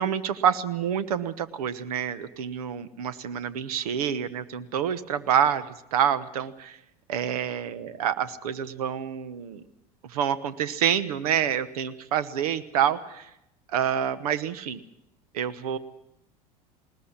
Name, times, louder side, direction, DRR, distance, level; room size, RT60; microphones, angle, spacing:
voice 1, 0.0-5.6 5.9-6.8 7.1-9.6 10.1-13.3 13.7-14.8 15.3-15.8, right 9 dB, 80° right, 15 dB, 1.1 m, -27 dB
20.5 x 19.5 x 7.3 m, 0.81 s
hypercardioid pair, 90°, 19 cm